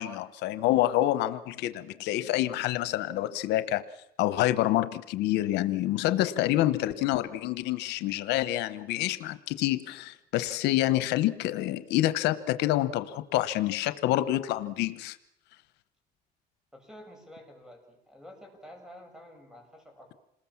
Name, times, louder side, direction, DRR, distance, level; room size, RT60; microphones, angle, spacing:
voice 1, 0.0-3.8 4.2-15.2, left 14 dB, 90° left, 13 dB, 1.0 m, -27 dB
voice 2, 16.7-20.2, equal, 5° right, 4 dB, 7.3 m, -50 dB
28.0 x 20.5 x 7.2 m, 0.80 s
cardioid pair, 110°, 17 cm